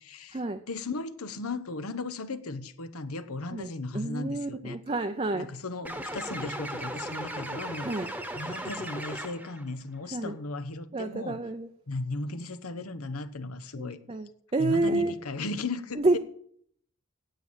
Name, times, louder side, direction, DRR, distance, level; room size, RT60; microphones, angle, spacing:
voice 1, 0.0-4.8 5.3-11.4 11.9-14.0 14.6-16.2, left 3 dB, 85° left, 1.0 m, -36 dB
voice 2, 3.9-5.5 7.8-8.1 10.1-10.3 10.9-11.7 13.8-14.3 14.5-15.1 16.0-16.2, right 2 dB, 25° right, 0.6 m, -28 dB
sound 1, 5.8-9.6, right 1 dB, 5° right, 1.1 m, -37 dB
9.2 x 8.5 x 8.9 m
head